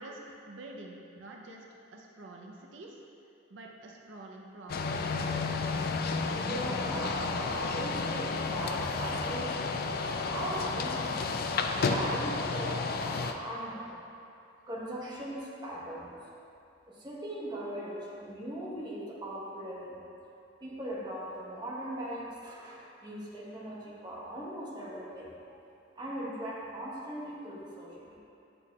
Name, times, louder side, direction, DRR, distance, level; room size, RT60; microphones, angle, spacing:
voice 1, 0.0-1.6 1.9-3.0 3.5-5.5, right 2 dB, 85° right, 0 dB, 0.6 m, -47 dB
sound 1, 4.7-13.3, left 4 dB, 55° left, 0.4 m, -32 dB
voice 2, 6.2-11.4 11.8-14.0 14.7-16.1 16.9-20.0 20.6-25.5 26.0-28.2, right 1 dB, 25° right, -6 dB, 1.1 m, -39 dB
8.6 x 6.9 x 2.3 m, 2.7 s
head